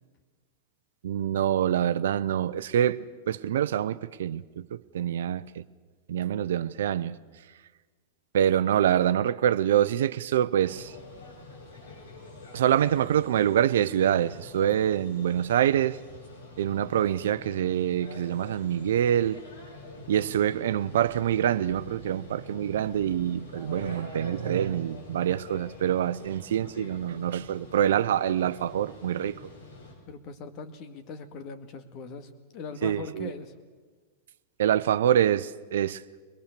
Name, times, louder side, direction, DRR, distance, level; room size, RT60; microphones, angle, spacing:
voice 1, 1.0-5.6 6.1-7.2 8.3-10.9 12.5-16.0 16.6-19.4 20.1-29.3 32.8-33.3 34.6-36.0, right 10 dB, 75° right, 0.7 m, -25 dB
sound 1, 10.6-29.9, left 3 dB, 85° left, 6.7 m, -46 dB
voice 2, 30.1-33.5, left 4 dB, 45° left, 2.1 m, -41 dB
22.5 x 21.5 x 6.8 m
hypercardioid pair, 105°, 0 cm